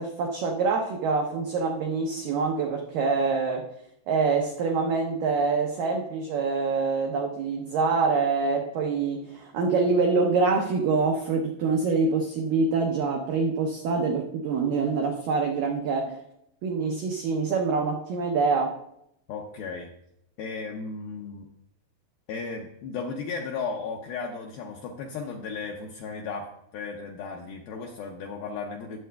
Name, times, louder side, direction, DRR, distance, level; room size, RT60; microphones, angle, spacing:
voice 1, 0.0-3.7 4.1-16.2 16.6-18.7, right 4 dB, 90° right, 1 dB, 1.9 m, -25 dB
voice 2, 19.3-19.9 20.4-21.5 22.3-29.0, left 4 dB, 80° left, 1 dB, 2.1 m, -35 dB
19.0 x 7.5 x 2.3 m, 0.78 s
omnidirectional pair, 5.1 m